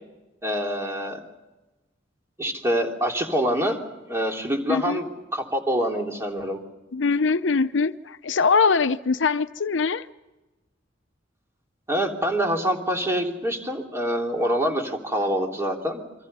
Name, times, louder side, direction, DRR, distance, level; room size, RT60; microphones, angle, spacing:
voice 1, 0.4-1.2 2.4-3.8 4.1-6.6 11.9-16.0, equal, 15° right, 3.3 m, -25 dB
voice 2, 6.9-10.0, left 4 dB, 70° left, 0.7 m, -22 dB
29.0 x 24.0 x 5.6 m
head